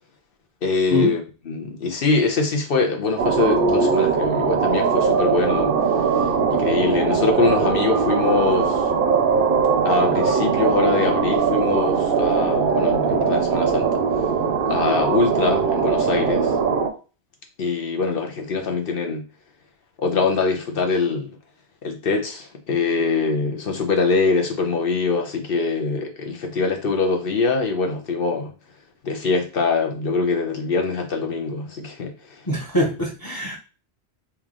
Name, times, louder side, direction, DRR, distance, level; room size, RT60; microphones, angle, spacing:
voice 1, 0.6-1.2 1.5-5.8 6.1-8.8 9.8-13.9 14.7-16.5 17.6-19.2 20.0-21.3 21.8-28.5 29.0-32.1, left 4 dB, 60° left, 1.1 m, -23 dB
sound 1, 3.2-16.9, right 5 dB, 65° right, 0.8 m, -20 dB
voice 2, 32.5-33.6, left 2 dB, 25° left, 0.8 m, -23 dB
3.4 x 3.0 x 3.7 m
omnidirectional pair, 1.1 m